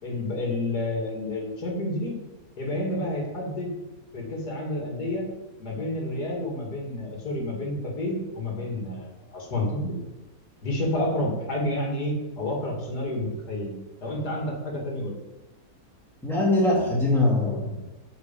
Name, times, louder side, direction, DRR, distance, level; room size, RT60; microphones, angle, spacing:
voice 1, 0.0-2.2 2.6-3.7 4.1-5.3 5.6-10.0 10.6-13.7 14.0-15.1, left 1 dB, 85° left, -1 dB, 2.9 m, -29 dB
voice 2, 16.2-17.8, left 2 dB, ahead, -5 dB, 2.8 m, -22 dB
9.3 x 5.6 x 7.4 m, 1.1 s
omnidirectional pair, 1.7 m